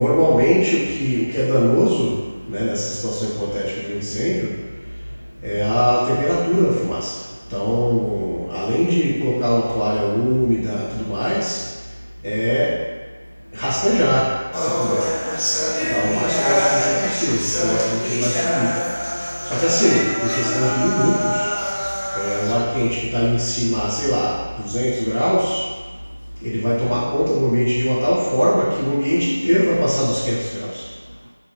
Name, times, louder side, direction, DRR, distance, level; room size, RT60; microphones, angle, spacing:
voice 1, 0.0-2.1 2.5-4.5 5.4-7.1 7.5-11.6 12.2-12.7 13.5-14.3 14.6-15.0 15.9-18.7 19.5-21.5 22.1-25.6 26.4-30.7, equal, 85° left, -10 dB, 1.0 m, -20 dB
sound 1, 14.5-22.5, equal, 40° left, 0.8 m, -23 dB
2.7 x 2.7 x 3.1 m, 1.4 s
figure-of-eight pair, 175°, 0 cm